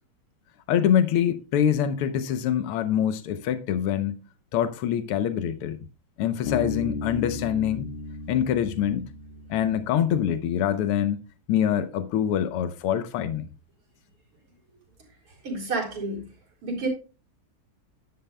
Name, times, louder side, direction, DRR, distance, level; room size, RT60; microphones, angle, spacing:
voice 1, 0.7-4.2 4.5-5.8 6.2-7.9 8.3-9.1 9.5-11.2 11.5-13.5, left 9 dB, 85° left, 1.7 m, -25 dB
Bass guitar, 6.5-10.2, left 3 dB, 60° left, 1.7 m, -35 dB
voice 2, 15.4-16.2 16.6-16.9, right 3 dB, 85° right, 5.0 m, -29 dB
12.0 x 10.5 x 2.2 m
omnidirectional pair, 2.4 m